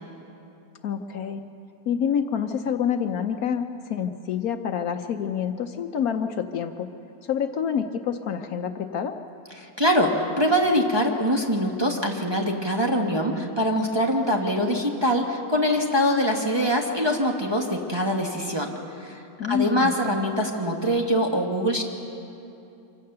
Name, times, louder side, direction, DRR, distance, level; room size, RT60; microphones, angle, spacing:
voice 1, 0.8-1.4 1.9-6.9 7.2-9.2 19.4-20.1, left 8 dB, 65° left, 7 dB, 1.1 m, -27 dB
voice 2, 9.6-19.2 19.5-21.8, equal, 15° right, 0 dB, 1.3 m, -23 dB
25.5 x 16.0 x 6.7 m, 2.8 s
omnidirectional pair, 1.8 m